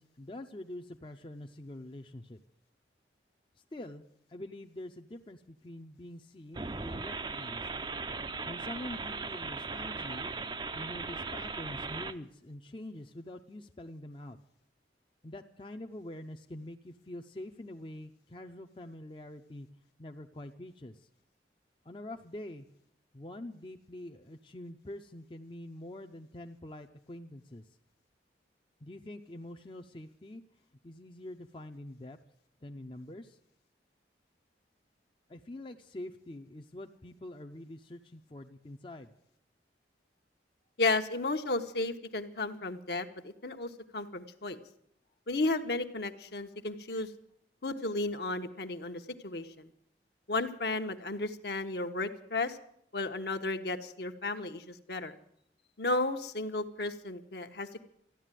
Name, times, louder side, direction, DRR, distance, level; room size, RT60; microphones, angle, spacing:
voice 1, 0.0-2.4 3.7-4.0 4.3-7.7 8.5-10.3 10.7-14.4 15.2-19.7 20.0-21.1 21.8-22.7 23.1-27.6 28.8-30.4 30.8-32.2 32.6-33.4 35.3-39.1, left 1 dB, 30° left, 4 dB, 0.6 m, -45 dB
sound 1, 6.5-12.1, right 4 dB, 25° right, 0.5 m, -38 dB
voice 2, 40.8-44.6 45.3-47.1 47.6-49.7 50.3-52.6 52.9-55.1 55.8-57.8, left 2 dB, 65° left, 6 dB, 1.1 m, -33 dB
14.0 x 10.5 x 9.1 m, 0.70 s
head